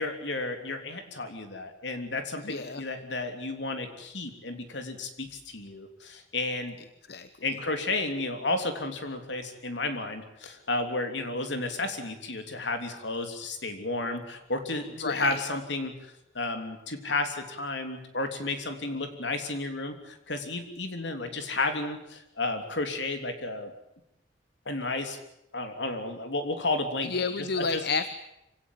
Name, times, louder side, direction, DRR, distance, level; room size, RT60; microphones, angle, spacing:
voice 1, 0.0-6.8 7.4-15.9 16.3-23.7 24.6-25.2 25.5-27.1 27.4-27.8, left 2 dB, 80° left, 6 dB, 3.3 m, -32 dB
voice 2, 2.4-2.8 7.1-7.6 15.0-15.4 27.0-28.1, left 4 dB, 65° left, 11 dB, 1.0 m, -31 dB
26.0 x 17.0 x 9.3 m, 0.85 s
head